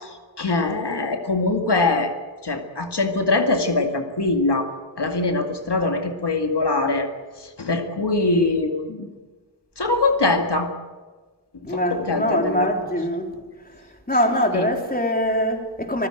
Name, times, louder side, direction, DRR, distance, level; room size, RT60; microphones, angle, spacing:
voice 1, 0.4-2.1 2.4-7.1 7.6-9.1 9.8-10.7 11.7-12.7 14.5-14.6, left 3 dB, 70° left, 4 dB, 2.2 m, -22 dB
voice 2, 11.6-13.3 13.6-16.1, equal, 20° left, 3 dB, 3.7 m, -23 dB
26.0 x 15.5 x 7.8 m, 1.4 s
wide cardioid pair, 50°, 42 cm